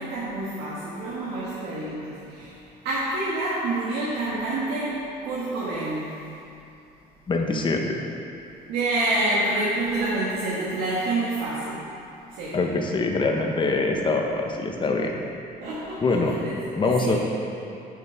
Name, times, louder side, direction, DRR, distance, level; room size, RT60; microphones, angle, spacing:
voice 1, 0.0-2.6 2.8-6.2 8.7-11.9 12.3-12.6 15.6-17.2, right 2 dB, 85° right, -7 dB, 1.7 m, -28 dB
voice 2, 7.3-8.0 12.5-15.2 16.0-16.4 16.8-17.2, left 3 dB, 30° left, 2 dB, 1.0 m, -24 dB
8.5 x 6.7 x 4.6 m, 2.8 s
cardioid pair, 110°, 17 cm